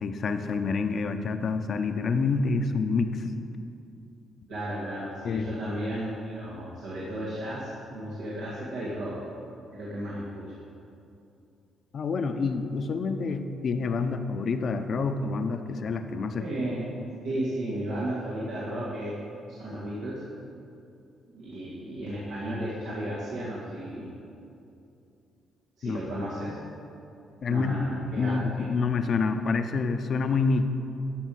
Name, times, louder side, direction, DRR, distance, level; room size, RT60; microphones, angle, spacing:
voice 1, 0.0-3.3 5.2-5.5 11.9-16.4 25.8-26.0 27.4-27.8 28.2-30.6, left 4 dB, 55° left, 8 dB, 0.8 m, -27 dB
voice 2, 4.5-9.2 9.7-10.6 16.4-16.9 17.2-19.1 19.5-20.2 21.3-24.1 25.8-26.6 27.5-28.7, right 1 dB, 80° right, -7 dB, 2.1 m, -34 dB
13.0 x 5.4 x 7.7 m, 2.7 s
cardioid pair, 90°, 0 cm